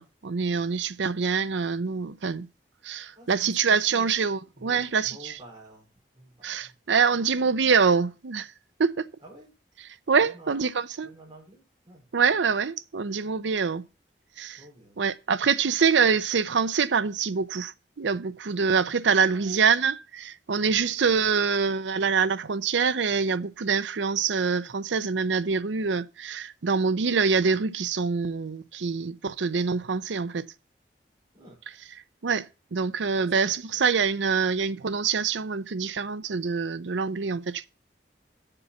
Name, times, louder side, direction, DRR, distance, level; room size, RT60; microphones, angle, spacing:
voice 1, 0.0-2.5 2.8-5.1 6.4-8.5 8.8-9.1 10.1-11.1 12.1-13.8 14.4-14.6 15.0-30.4 32.2-37.7, right 5 dB, 85° right, 0.6 m, -25 dB
voice 2, 3.1-4.2 4.6-6.7 7.1-7.4 9.2-9.5 10.2-10.6 11.0-12.1 14.6-15.0 19.3-19.6 20.7-21.3 31.3-31.6 33.2-33.8, right 1 dB, 25° right, 4.2 m, -50 dB
6.9 x 5.6 x 7.0 m
head